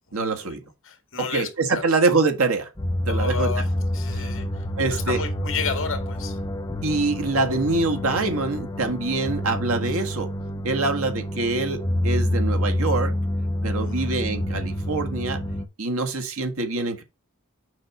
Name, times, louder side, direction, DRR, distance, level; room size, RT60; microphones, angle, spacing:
voice 1, 0.1-0.6 1.2-2.7 3.1-3.5 4.1-4.3 4.8-5.2 6.8-10.3 10.6-13.1 13.6-15.4 15.8-17.0, right 3 dB, 70° right, 1.6 m, -25 dB
voice 2, 0.8-1.9 3.1-6.4 13.8-14.2, left 5 dB, 60° left, 2.0 m, -32 dB
sound 1, 2.8-15.7, left 1 dB, 15° left, 0.7 m, -27 dB
6.5 x 5.2 x 4.4 m
head